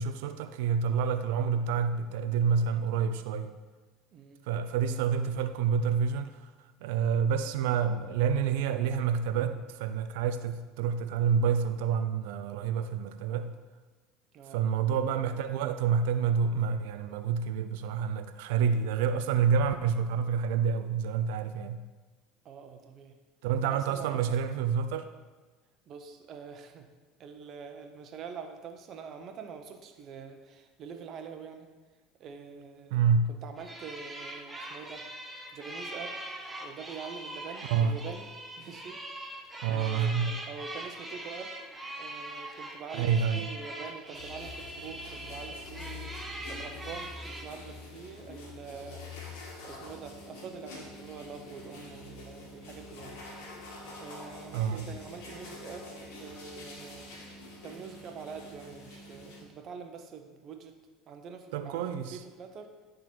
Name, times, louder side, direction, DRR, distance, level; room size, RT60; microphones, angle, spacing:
voice 1, 0.0-3.5 4.4-6.5 6.8-13.5 14.5-21.8 23.4-25.1 32.9-33.3 37.6-38.0 39.6-40.4 42.9-43.5 54.5-54.9 61.5-62.2, right 6 dB, 75° right, 10 dB, 0.5 m, -28 dB
voice 2, 22.4-23.2 23.7-24.3 25.9-26.9 27.2-31.7 32.2-33.0 33.3-35.0 35.5-36.2 36.6-38.3 38.6-41.5 41.9-53.2 54.0-55.9 56.2-57.1 57.6-60.7 61.1-61.8 62.1-62.7, right 6 dB, 50° right, 6 dB, 0.9 m, -45 dB
sound 1, 33.6-47.4, right 1 dB, 15° right, 1.2 m, -42 dB
sound 2, 44.1-59.4, left 2 dB, 75° left, 1.7 m, -46 dB
10.0 x 3.9 x 4.6 m, 1.3 s
supercardioid pair, 90°, 0 cm